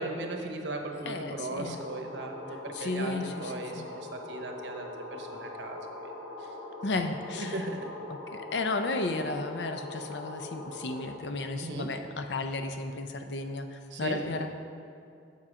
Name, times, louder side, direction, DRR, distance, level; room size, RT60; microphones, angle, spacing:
voice 1, 0.0-5.8 6.4-6.5 7.3-7.9 11.6-11.9 13.9-14.2, right 2 dB, 80° right, 3 dB, 0.9 m, -37 dB
voice 2, 1.0-1.8 2.7-3.9 6.8-7.7 8.3-14.5, left 3 dB, 70° left, 6 dB, 0.6 m, -33 dB
sound 1, 1.7-11.1, left 2 dB, 50° left, 1.7 m, -42 dB
7.5 x 7.0 x 4.9 m, 2.5 s
head